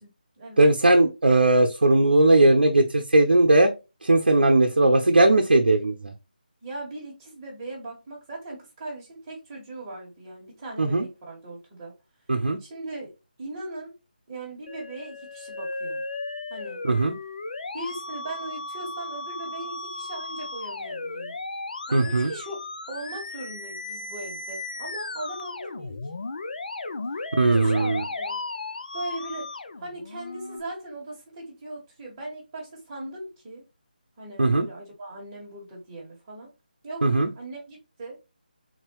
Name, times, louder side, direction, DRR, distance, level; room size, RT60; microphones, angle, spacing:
voice 1, 0.0-0.7 6.6-11.9 12.6-13.1 13.4-13.9 14.3-16.0 16.5-16.8 17.7-21.4 21.9-22.6 22.9-26.0 27.5-28.4 28.9-33.6 34.2-36.5 36.8-38.2, right 2 dB, 25° right, 1.7 m, -39 dB
voice 2, 0.6-3.7 4.0-6.1 10.8-11.0 12.3-12.6 16.8-17.1 21.9-22.3 27.4-28.0 34.4-34.7 37.0-37.3, right 2 dB, 80° right, 0.7 m, -19 dB
Musical instrument, 14.7-30.6, left 3 dB, 60° left, 0.6 m, -35 dB
3.9 x 2.9 x 3.1 m
figure-of-eight pair, 165°, 5 cm